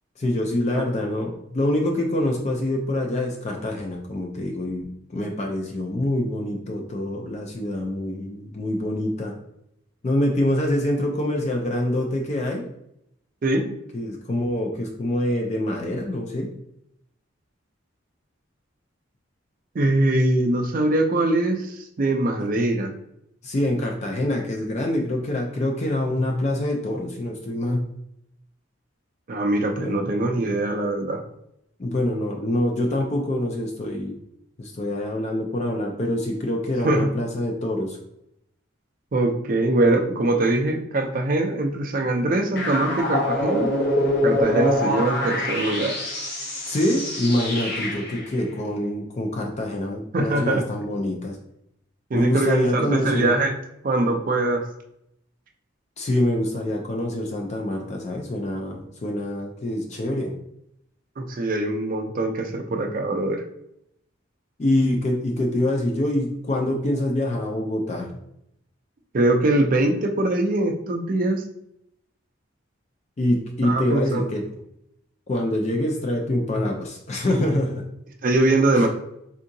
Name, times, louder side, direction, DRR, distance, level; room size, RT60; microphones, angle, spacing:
voice 1, 0.2-9.3 10.0-12.6 13.9-16.5 23.4-27.9 29.8-30.1 31.8-34.2 34.6-38.0 46.7-51.4 52.1-53.3 56.0-60.3 64.6-68.1 73.2-74.4 75.3-77.8 78.7-78.9, left 1 dB, 35° left, 1 dB, 0.4 m, -25 dB
voice 2, 19.7-22.9 29.3-31.2 36.8-37.1 39.1-43.7 44.2-45.9 50.1-50.6 52.1-53.5 53.8-54.7 61.2-63.4 69.1-71.4 73.6-74.3 78.2-78.9, right 2 dB, 40° right, 4 dB, 0.4 m, -22 dB
sound 1, 42.6-48.3, left 1 dB, 50° left, 0.8 m, -25 dB
3.6 x 2.7 x 2.6 m, 0.78 s
head